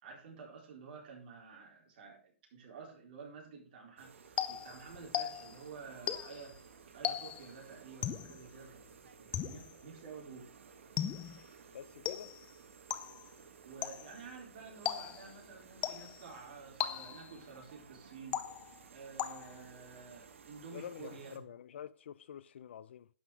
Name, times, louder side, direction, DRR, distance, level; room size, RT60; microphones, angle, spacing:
voice 1, 0.0-4.1 4.5-6.7 6.9-10.5 13.6-18.4 18.9-21.5, right 5 dB, 40° right, 4.1 m, -51 dB
sound 1, 4.0-21.4, right 6 dB, 70° right, 1.5 m, -57 dB
sound 2, 4.4-5.6 6.1-6.5 7.0-7.5 8.0-8.4 9.3-9.8 11.0-11.4 12.1-12.5 12.9-13.3 13.8-14.2 14.9-15.4 15.8-16.3 16.8-17.4 18.3-18.8 19.2-19.7, left 10 dB, 15° left, 0.6 m, -38 dB
voice 2, 11.7-12.3 20.7-23.1, left 9 dB, 60° left, 0.5 m, -47 dB
11.5 x 5.9 x 4.8 m
hypercardioid pair, 155°, 7 cm